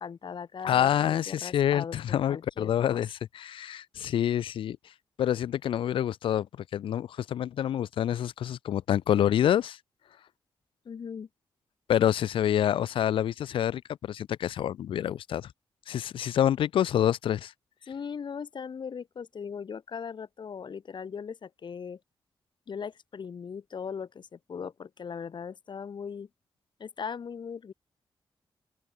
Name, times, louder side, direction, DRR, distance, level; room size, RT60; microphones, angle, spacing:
voice 1, 0.0-3.0 10.9-11.3 17.9-22.0 22.7-26.3 26.8-27.7, left 6 dB, 65° left, 2.1 m, -39 dB
voice 2, 0.6-4.8 5.2-6.5 6.7-9.8 11.9-13.8 14.1-15.5 15.9-17.5, left 10 dB, 85° left, 0.5 m, -27 dB
open air
cardioid pair, 70°, 9 cm